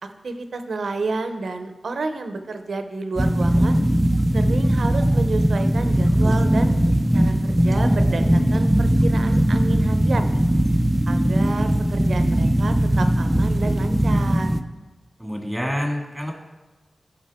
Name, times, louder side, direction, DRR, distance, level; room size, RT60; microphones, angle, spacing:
voice 1, 0.0-3.8 4.3-6.8 7.1-10.3 11.1-14.5, right 3 dB, 80° right, 7 dB, 0.8 m, -30 dB
sound 1, 3.2-14.6, right 1 dB, 15° right, 0.5 m, -19 dB
voice 2, 15.2-16.3, equal, ahead, 0 dB, 2.0 m, -27 dB
15.5 x 5.3 x 3.6 m, 1.2 s
wide cardioid pair, 75°, 0 cm